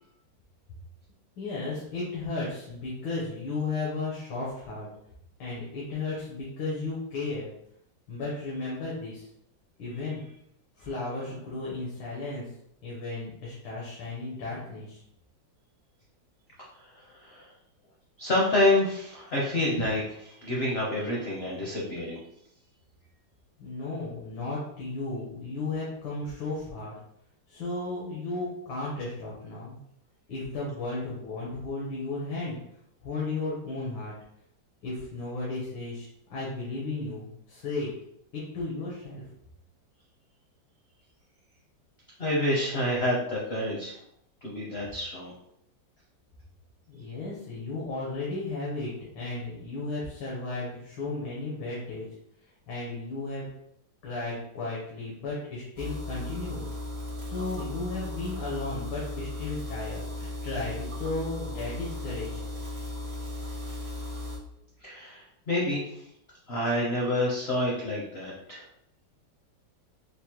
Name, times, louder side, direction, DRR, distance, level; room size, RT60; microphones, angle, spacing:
voice 1, 1.4-4.9 5.4-7.5 8.1-9.3 9.8-10.2 10.8-12.4 12.8-15.0 23.6-27.0 27.5-29.8 30.3-32.6 33.0-34.1 34.8-37.9 38.3-39.2 46.9-52.1 52.7-53.5 54.0-56.6 57.2-62.4, left 3 dB, 90° left, -6 dB, 1.7 m, -34 dB
voice 2, 18.2-22.2 42.2-43.9 44.4-45.3 64.8-65.8 66.5-68.6, left 1 dB, 60° left, -4 dB, 0.6 m, -28 dB
sound 1, 55.8-64.4, left 2 dB, 45° right, 0.7 m, -36 dB
5.1 x 2.1 x 2.9 m, 0.75 s
omnidirectional pair, 2.1 m